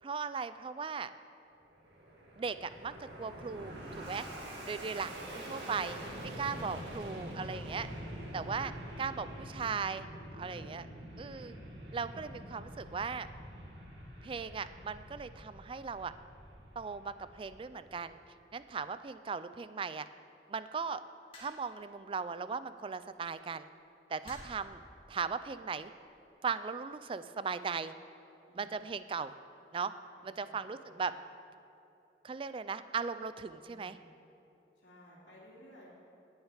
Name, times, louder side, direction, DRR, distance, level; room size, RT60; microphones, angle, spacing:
voice 1, 0.0-1.1 2.4-4.3 4.6-5.1 5.5-6.0 6.4-7.9 8.3-8.7 9.0-10.1 10.3-10.8 11.2-11.5 11.9-13.3 14.2-16.1 16.8-18.2 18.5-20.1 20.5-21.0 21.4-23.7 24.1-24.8 25.1-25.9 26.4-27.9 28.6-29.3 29.7-29.9 30.2-31.1 32.2-34.0, right 5 dB, 30° right, 13 dB, 0.3 m, -38 dB
Fixed-wing aircraft airplane, 1.6-18.2, equal, 80° right, 2.1 m, -46 dB
voice 2, 4.8-5.2 6.6-6.8 8.4-8.7 10.5-11.4 24.3-24.7 28.5-28.7 30.2-31.1 33.6-34.0 34.8-35.9, equal, 80° left, -7 dB, 2.8 m, -59 dB
sound 1, 21.3-21.8 23.1-23.3 24.2-24.7 25.7-26.0, left 1 dB, 30° left, 2.3 m, -52 dB
18.0 x 6.4 x 4.9 m, 2.8 s
head